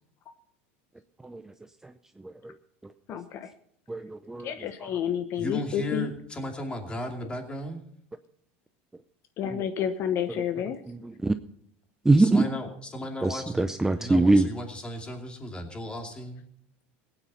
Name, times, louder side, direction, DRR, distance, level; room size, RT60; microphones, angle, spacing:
voice 1, 3.1-3.5 4.4-6.1 9.4-10.8, left 9 dB, 45° left, 10 dB, 0.9 m, -30 dB
voice 2, 3.9-4.5 9.4-9.6 10.9-11.3 12.0-12.4 13.2-14.5, right 2 dB, 10° right, 10 dB, 0.5 m, -23 dB
voice 3, 5.3-7.8 12.2-16.4, left 1 dB, 15° left, 4 dB, 2.5 m, -36 dB
17.0 x 9.1 x 5.5 m, 0.69 s
supercardioid pair, 120°, 6 cm